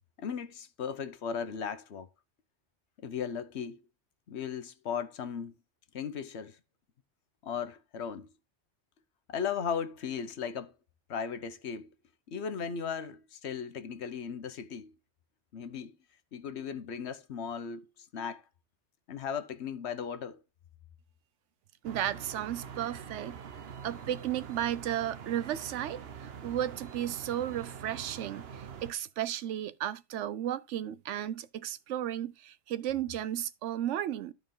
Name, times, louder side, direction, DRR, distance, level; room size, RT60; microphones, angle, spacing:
voice 1, 0.2-2.1 3.0-3.8 4.3-5.5 5.9-6.6 7.4-8.3 9.3-10.7 11.1-11.9 12.3-14.9 15.5-16.0 16.3-17.9 18.1-18.4 19.1-20.4, left 7 dB, 70° left, 1.1 m, -36 dB
sound 1, 21.8-28.9, right 7 dB, 60° right, 1.1 m, -45 dB
voice 2, 21.8-23.4 23.8-34.3, right 11 dB, 85° right, 0.9 m, -34 dB
12.5 x 4.6 x 3.8 m
omnidirectional pair, 1.2 m